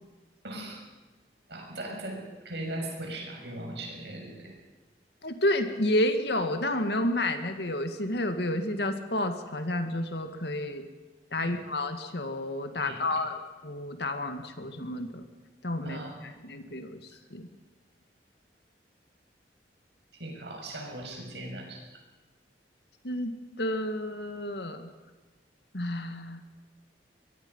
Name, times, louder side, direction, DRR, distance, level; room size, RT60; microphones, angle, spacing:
voice 1, 0.4-0.8 1.5-4.5 10.6-10.7 11.4-11.6 12.7-13.1 15.8-16.4 20.2-21.8, right 1 dB, 70° right, 1 dB, 6.7 m, -39 dB
voice 2, 5.2-10.8 11.3-15.2 15.6-16.0 16.4-17.0 17.3-17.5 23.0-24.9 25.7-26.4, left 1 dB, 65° left, 7 dB, 2.1 m, -30 dB
24.0 x 22.5 x 5.6 m, 1.2 s
head